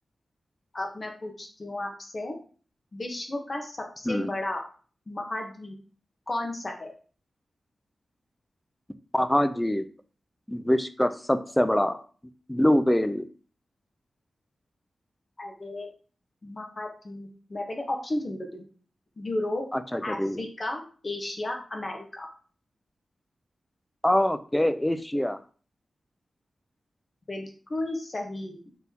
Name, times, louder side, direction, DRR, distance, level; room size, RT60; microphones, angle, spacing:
voice 1, 0.7-2.4 2.9-4.6 5.1-5.7 6.3-6.9 15.4-15.9 16.4-18.6 19.2-19.6 20.0-22.3 27.3-28.6, left 1 dB, 35° left, 1 dB, 1.0 m, -33 dB
voice 2, 9.1-9.9 10.5-12.0 12.5-13.3 19.7-20.4 24.0-25.4, left 1 dB, 10° left, 11 dB, 0.3 m, -24 dB
4.0 x 3.7 x 2.8 m, 0.41 s
wide cardioid pair, 105°, 0 cm